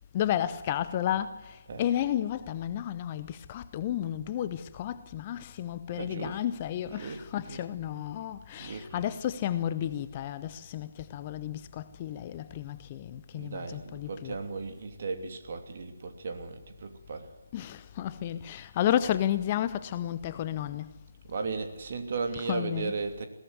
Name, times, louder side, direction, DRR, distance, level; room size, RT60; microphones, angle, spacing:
voice 1, 0.1-14.4 17.5-20.9 22.3-23.0, left 11 dB, 25° left, 0.7 m, -32 dB
voice 2, 5.9-6.4 6.8-7.6 8.6-9.1 13.3-17.3 21.3-23.3, right 4 dB, 40° right, 2.9 m, -36 dB
21.5 x 17.5 x 7.9 m
figure-of-eight pair, 150°, 0 cm